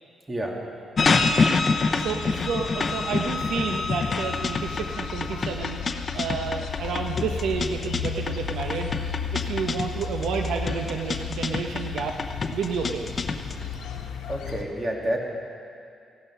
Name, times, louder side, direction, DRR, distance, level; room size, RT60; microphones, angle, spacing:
voice 1, 0.3-0.6 14.3-15.2, right 1 dB, 25° right, 0 dB, 2.3 m, -28 dB
sound 1, 1.0-14.6, left 6 dB, 85° left, 1.0 m, -35 dB
sound 2, 1.0-13.6, left 4 dB, 40° left, 0.7 m, -27 dB
voice 2, 2.0-8.9 9.3-12.2 12.5-13.1, right 5 dB, 85° right, 3 dB, 0.9 m, -30 dB
15.0 x 11.0 x 5.7 m, 2.4 s
cardioid pair, 85°, 0 cm